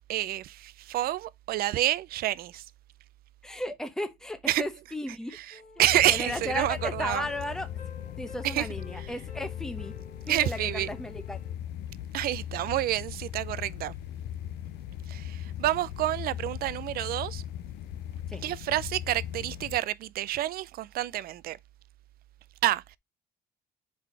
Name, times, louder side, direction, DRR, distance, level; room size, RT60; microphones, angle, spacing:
voice 1, 0.1-2.6 4.5-4.6 5.3-7.3 8.4-8.7 8.9-9.1 10.3-10.9 12.1-14.0 15.1-17.4 18.4-21.6 22.6-23.0, right 14 dB, 60° right, 0.4 m, -28 dB
voice 2, 3.4-5.4 6.0-7.7 8.2-9.9 10.3-11.4 18.3-18.4, left 1 dB, 5° left, 0.8 m, -35 dB
sound 1, 5.5-11.6, left 5 dB, 60° left, 1.7 m, -49 dB
sound 2, 5.8-19.8, left 11 dB, 80° left, 0.5 m, -39 dB
4.9 x 4.0 x 5.4 m
cardioid pair, 110°, 17 cm